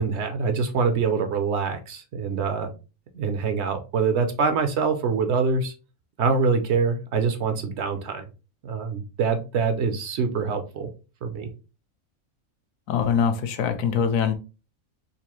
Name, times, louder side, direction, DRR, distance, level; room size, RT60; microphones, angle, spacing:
voice 1, 0.0-2.7 3.1-5.7 6.2-8.2 8.6-10.9 11.2-11.5, right 5 dB, 65° right, 0.8 m, -25 dB
voice 2, 12.9-14.3, left 7 dB, 85° left, 1.0 m, -23 dB
4.0 x 2.5 x 2.9 m
omnidirectional pair, 1.4 m